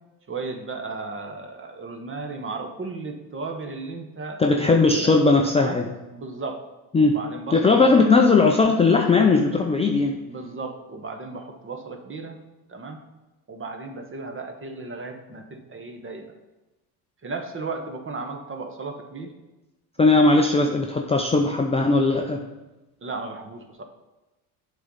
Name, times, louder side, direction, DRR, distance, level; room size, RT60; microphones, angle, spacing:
voice 1, 0.3-5.2 5.6-5.8 6.1-6.6 7.0-8.1 10.2-12.4 12.7-13.0 13.5-16.3 17.2-19.3 20.0-20.1 20.6-20.8 23.0-23.8, right 3 dB, 25° right, 5 dB, 1.1 m, -35 dB
voice 2, 4.4-5.9 6.9-7.2 7.5-10.2 20.0-22.4, left 3 dB, 15° left, 2 dB, 0.5 m, -18 dB
7.7 x 3.9 x 5.5 m, 1.1 s
supercardioid pair, 95°, 48 cm